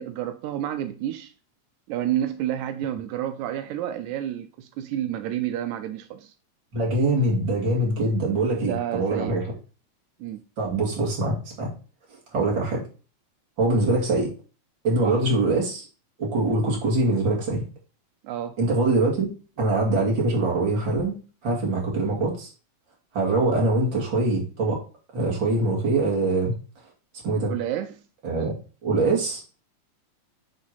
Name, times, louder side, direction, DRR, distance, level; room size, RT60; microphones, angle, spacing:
voice 1, 0.0-1.3 1.9-6.3 8.4-9.4 10.2-10.4 15.0-15.2 18.2-18.6 27.5-28.0, right 11 dB, 85° right, 1.7 m, -30 dB
voice 2, 6.7-9.4 10.6-11.7 12.3-12.8 13.6-14.3 14.8-15.8 16.2-17.6 18.6-19.3 19.6-21.2 21.4-22.5 23.1-24.8 25.1-26.5 27.2-27.5 28.2-28.5 28.8-29.4, right 2 dB, 35° right, 2.6 m, -23 dB
8.0 x 3.6 x 5.7 m
omnidirectional pair, 4.0 m